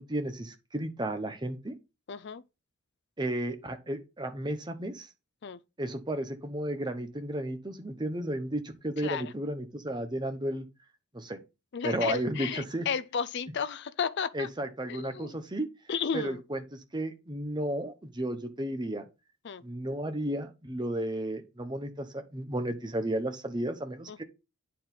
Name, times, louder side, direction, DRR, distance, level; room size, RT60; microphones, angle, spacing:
voice 1, 0.0-1.7 3.2-5.1 5.8-10.7 11.1-11.4 11.8-12.9 14.3-15.7 16.1-19.1 19.6-24.2, right 1 dB, 20° right, 1.0 m, -33 dB
voice 2, 2.1-2.4 5.4-5.6 9.0-9.3 11.7-14.5 14.9-15.4 15.9-16.4 19.4-19.6 24.1-24.2, left 6 dB, 50° left, 0.4 m, -33 dB
9.0 x 4.5 x 3.9 m
head